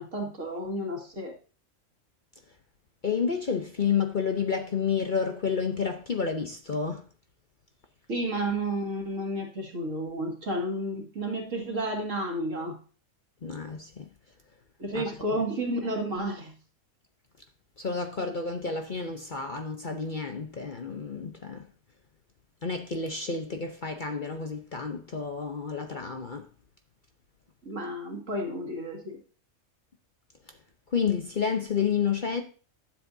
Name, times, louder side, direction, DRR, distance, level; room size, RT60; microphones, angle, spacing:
voice 1, 0.0-1.3 8.1-12.8 14.8-16.5 27.6-29.2, right 1 dB, 65° right, 2.4 m, -31 dB
voice 2, 3.0-7.0 13.4-14.0 14.9-15.0 17.8-21.6 22.6-26.5 30.9-32.4, left 6 dB, 45° left, 0.8 m, -30 dB
12.0 x 7.6 x 2.7 m
omnidirectional pair, 1.4 m